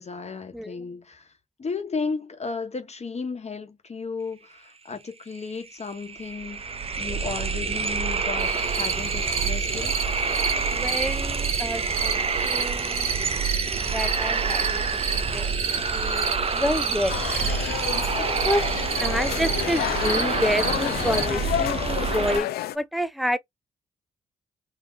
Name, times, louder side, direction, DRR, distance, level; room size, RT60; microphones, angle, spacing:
voice 1, 0.0-1.3 1.6-6.6 7.0-10.1, left 4 dB, 40° left, 1.2 m, -34 dB
voice 2, 0.5-0.9 10.7-13.1 13.8-14.9 15.3-15.5 15.9-17.2 18.2-18.7 19.0-22.5 22.7-23.4, equal, ahead, 0.7 m, -29 dB
sound 1, 5.4-5.5 5.7-22.4, right 5 dB, 40° right, 0.7 m, -27 dB
sound 2, 8.4-21.3, right 6 dB, 55° right, 1.9 m, -32 dB
sound 3, 17.1-22.8, left 13 dB, 75° left, 0.4 m, -29 dB
3.5 x 2.9 x 2.7 m
hypercardioid pair, 40°, 16 cm